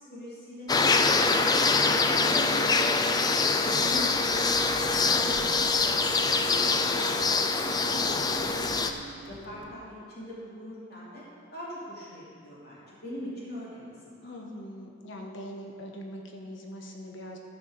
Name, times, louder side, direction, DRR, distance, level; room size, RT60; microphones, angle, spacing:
voice 1, 0.1-1.4 1.7-3.3 3.6-5.8 6.1-9.0 9.3-11.3 11.5-14.3, equal, 55° left, -7 dB, 2.9 m, -43 dB
sound 1, 0.7-8.9, left 3 dB, 20° left, 0.4 m, -24 dB
sound 2, 3.7-9.7, right 4 dB, 75° right, 0.7 m, -48 dB
voice 2, 14.2-17.4, equal, 75° left, 1 dB, 1.2 m, -42 dB
13.5 x 5.1 x 6.4 m, 2.2 s
head